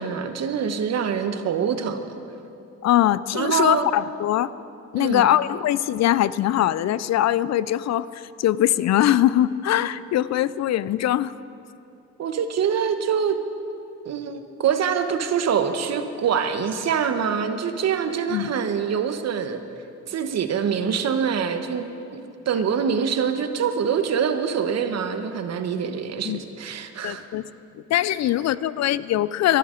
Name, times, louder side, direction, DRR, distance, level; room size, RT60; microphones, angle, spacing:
voice 1, 0.0-2.0 3.3-3.9 5.0-5.3 12.2-13.4 14.0-19.6 20.1-27.2, right 7 dB, 60° right, 8 dB, 1.0 m, -25 dB
voice 2, 2.8-4.5 4.9-11.3 18.3-18.5 26.2-26.4 27.0-27.4 27.9-29.6, left 12 dB, 60° left, 17 dB, 0.4 m, -22 dB
22.0 x 11.0 x 3.8 m, 2.7 s
cardioid pair, 90°, 30 cm